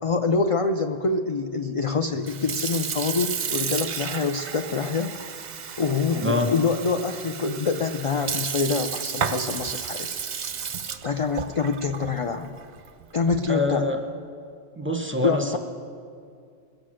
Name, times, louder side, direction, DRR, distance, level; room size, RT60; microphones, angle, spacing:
voice 1, 0.0-5.2 5.8-10.2 11.0-12.5 13.1-13.9 15.2-15.6, left 4 dB, 45° left, 6 dB, 0.4 m, -25 dB
Sink (filling or washing) / Fill (with liquid), 2.1-13.7, right 7 dB, 50° right, 0.6 m, -32 dB
voice 2, 13.5-14.0 14.8-15.6, left 2 dB, 10° right, 3 dB, 0.9 m, -25 dB
21.5 x 7.9 x 6.3 m, 2.3 s
omnidirectional pair, 1.1 m